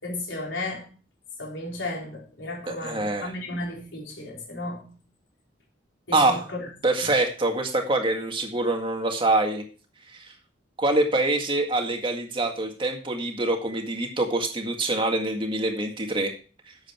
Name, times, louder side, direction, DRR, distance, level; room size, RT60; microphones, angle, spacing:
voice 1, 0.0-0.9 1.4-4.9 6.1-6.4, left 2 dB, 85° left, 4.1 m, -34 dB
voice 2, 2.7-3.3 6.1-6.5 6.8-9.6 10.1-10.3 10.8-16.3, right 2 dB, 30° right, 2.0 m, -25 dB
11.5 x 7.9 x 4.5 m
head